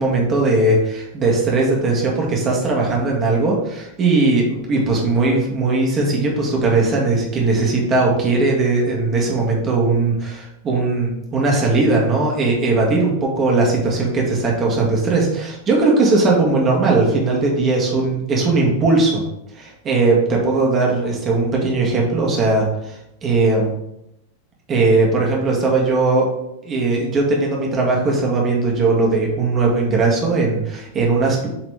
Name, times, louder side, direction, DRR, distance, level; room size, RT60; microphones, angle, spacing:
voice 1, 0.0-19.2 19.6-23.7 24.7-26.3 26.6-31.5, right 3 dB, 25° right, -2 dB, 1.8 m, -18 dB
7.3 x 3.9 x 3.4 m, 0.84 s
figure-of-eight pair, 90°, 0 cm